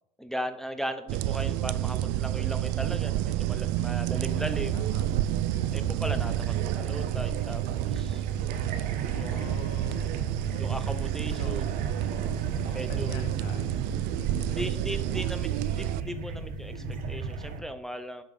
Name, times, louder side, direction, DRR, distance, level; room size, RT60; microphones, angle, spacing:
voice 1, 0.2-4.9 5.7-8.2 9.1-9.6 10.6-11.7 12.7-13.3 14.5-18.2, equal, ahead, 8 dB, 0.6 m, -37 dB
sound 1, 1.1-16.0, right 14 dB, 60° right, 0.5 m, -30 dB
voice 2, 3.8-4.2 4.7-5.1 5.5-5.9 9.1-10.2 11.2-11.9 12.7-13.8 14.2-14.7, left 7 dB, 80° left, 7 dB, 0.9 m, -46 dB
sound 2, 4.2-17.6, right 4 dB, 45° right, 1.4 m, -36 dB
8.2 x 5.4 x 5.3 m, 0.80 s
supercardioid pair, 125°, 21 cm